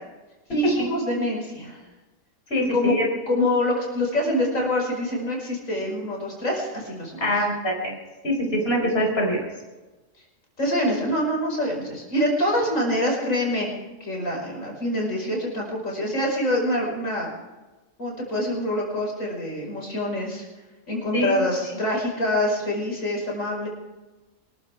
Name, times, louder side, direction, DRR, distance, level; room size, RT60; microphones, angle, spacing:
voice 1, 0.5-1.8 2.7-2.9 3.3-7.3 10.6-13.7 14.0-17.3 18.0-20.5 20.9-23.7, left 1 dB, 85° left, -1 dB, 5.8 m, -25 dB
voice 2, 2.5-3.0 7.2-8.0 8.2-9.4 21.1-21.3, equal, 50° left, -1 dB, 5.0 m, -24 dB
25.0 x 15.0 x 3.6 m, 1.2 s
omnidirectional pair, 1.3 m